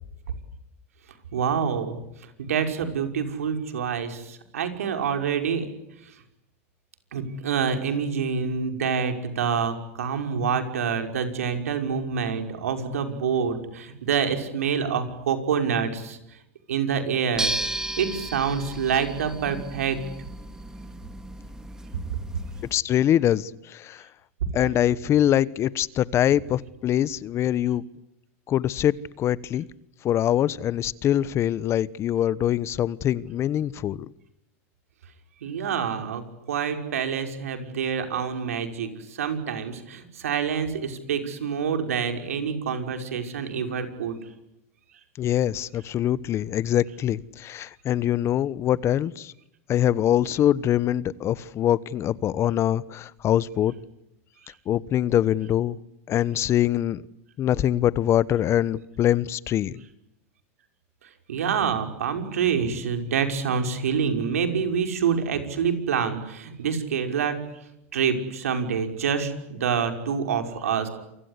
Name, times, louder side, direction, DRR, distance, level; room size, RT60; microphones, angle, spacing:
voice 1, 1.3-2.0 2.4-5.7 7.1-16.2 16.7-17.5 18.0-20.0 35.4-36.2 36.5-44.2 61.3-67.4 67.9-70.9, right 6 dB, 90° right, 5.7 m, -27 dB
sound 1, 17.3-22.7, right 1 dB, 10° right, 2.8 m, -34 dB
voice 2, 22.7-24.0 24.5-27.8 28.5-29.7 30.0-34.1 45.2-49.3 49.7-53.7 54.7-55.8 56.1-57.0 57.4-59.8, left 11 dB, 35° left, 1.1 m, -23 dB
28.5 x 25.0 x 8.3 m
hypercardioid pair, 115°, 8 cm